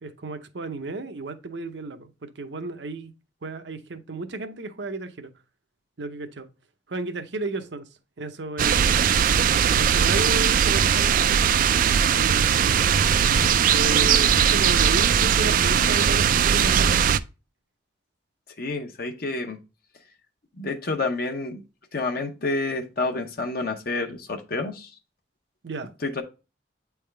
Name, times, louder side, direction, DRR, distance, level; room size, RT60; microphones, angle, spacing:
voice 1, 0.0-3.1 3.4-5.3 6.0-6.5 6.9-7.9 8.2-8.9 9.8-11.8 12.1-12.9 13.7-17.2 25.6-25.9, right 2 dB, 75° right, 0.7 m, -33 dB
sound 1, 8.6-17.2, right 8 dB, 50° right, 0.3 m, -20 dB
voice 2, 13.1-13.5 18.6-19.6 20.6-21.6 21.9-24.9 26.0-26.2, left 3 dB, 55° left, 0.8 m, -29 dB
8.6 x 3.5 x 3.3 m
head